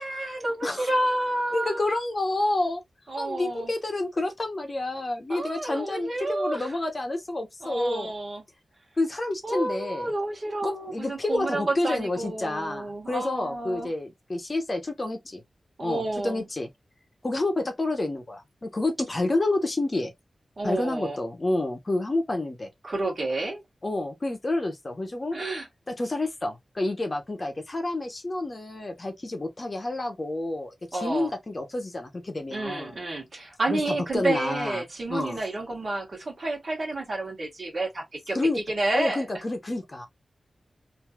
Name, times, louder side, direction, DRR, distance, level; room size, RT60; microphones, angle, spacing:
voice 1, 0.0-1.9 3.1-3.7 5.3-6.7 7.6-8.4 9.4-13.9 15.8-16.4 20.6-21.2 22.8-23.6 25.3-25.7 30.9-31.3 32.5-38.4 38.7-39.3, right 2 dB, 50° right, 1.5 m, -30 dB
voice 2, 1.5-2.8 3.2-8.1 9.0-10.1 10.6-15.4 15.8-16.7 17.2-20.1 20.6-22.7 23.8-25.4 25.9-33.0 33.7-33.8 34.1-34.8 35.1-35.4 38.3-38.6 38.9-40.1, left 2 dB, 35° left, 0.8 m, -29 dB
3.1 x 2.7 x 2.3 m
wide cardioid pair, 95°, 0 cm